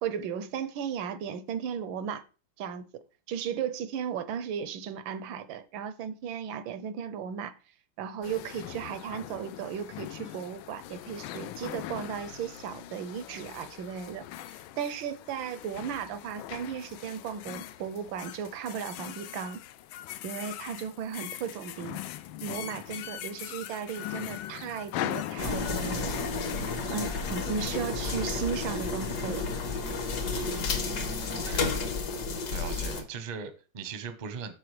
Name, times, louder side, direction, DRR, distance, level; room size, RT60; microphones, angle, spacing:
voice 1, 0.0-2.2 2.6-2.9 3.3-7.5 8.0-19.6 20.2-22.0 22.4-26.1 26.9-29.5, right 7 dB, 85° right, 1.4 m, -35 dB
sound 1, 8.2-27.9, left 13 dB, 85° left, 1.3 m, -41 dB
sound 2, 25.4-33.0, left 4 dB, 60° left, 1.5 m, -31 dB
voice 2, 30.2-31.8 32.5-34.5, right 5 dB, 45° right, 0.5 m, -40 dB
12.0 x 4.4 x 3.2 m
omnidirectional pair, 2.1 m